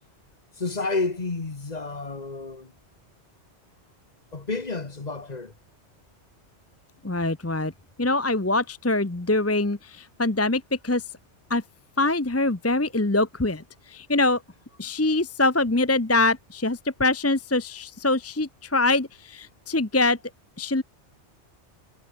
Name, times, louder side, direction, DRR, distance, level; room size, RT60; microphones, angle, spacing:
voice 1, 0.6-2.7 4.3-5.5, left 3 dB, 35° left, 1.6 m, -30 dB
voice 2, 7.0-7.7 8.0-11.0 11.5-11.6 12.0-14.4 14.8-20.2 20.6-20.8, left 2 dB, 15° left, 0.8 m, -24 dB
omnidirectional pair, 1.2 m